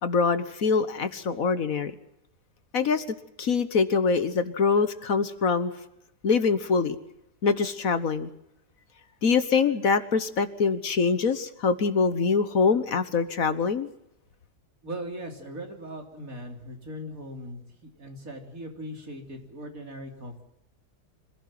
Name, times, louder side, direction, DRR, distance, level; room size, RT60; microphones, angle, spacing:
voice 1, 0.0-1.9 2.7-3.0 3.4-5.7 6.2-7.0 7.4-8.3 9.2-13.9, left 5 dB, 60° left, 12 dB, 1.6 m, -24 dB
voice 2, 14.8-20.4, equal, 60° right, 3 dB, 4.0 m, -39 dB
26.5 x 16.0 x 7.7 m, 0.81 s
omnidirectional pair, 1.7 m